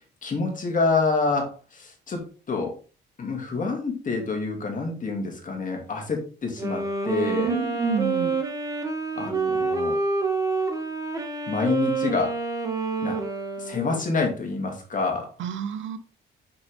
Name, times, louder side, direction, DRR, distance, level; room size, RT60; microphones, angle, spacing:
voice 1, 0.2-2.8 3.2-7.5 9.2-10.0 11.5-12.4 13.0-13.2 13.6-15.3, left 4 dB, 40° left, 2.5 m, -27 dB
Wind instrument woodwind instrument, 6.5-14.2, right 3 dB, 15° right, 1.6 m, -28 dB
voice 2, 7.4-8.3 15.4-16.0, right 7 dB, 75° right, 0.9 m, -28 dB
5.9 x 5.2 x 3.6 m
cardioid pair, 90°, 20 cm